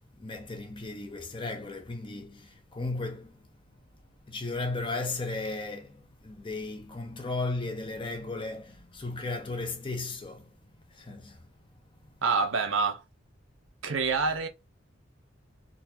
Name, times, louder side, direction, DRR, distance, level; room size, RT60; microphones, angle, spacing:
voice 1, 0.2-3.5 4.3-10.5 10.9-11.4, left 3 dB, 25° left, 0.7 m, -35 dB
voice 2, 12.2-13.0 13.8-14.5, right 4 dB, 85° right, 0.8 m, -26 dB
3.9 x 2.5 x 2.8 m
head